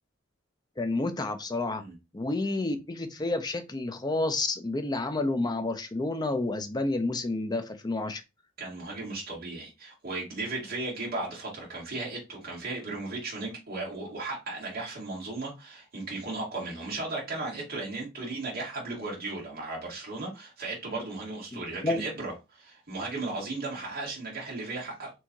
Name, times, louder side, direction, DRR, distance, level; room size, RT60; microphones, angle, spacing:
voice 1, 0.8-1.8 2.1-8.2 21.5-22.0, left 2 dB, 20° left, 0.5 m, -30 dB
voice 2, 8.6-25.1, right 2 dB, 50° right, 2.3 m, -36 dB
4.5 x 3.4 x 2.6 m
head